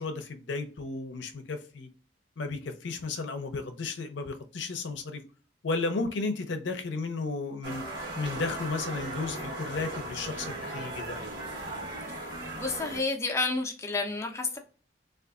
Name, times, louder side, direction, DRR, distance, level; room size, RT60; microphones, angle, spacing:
voice 1, 0.0-1.9 2.4-5.2 5.6-7.8 8.2-11.2, left 3 dB, 75° left, 0.6 m, -33 dB
sound 1, 7.6-13.0, right 2 dB, 60° right, 1.1 m, -37 dB
voice 2, 12.6-14.6, left 3 dB, 15° left, 0.5 m, -30 dB
3.6 x 2.4 x 2.4 m
head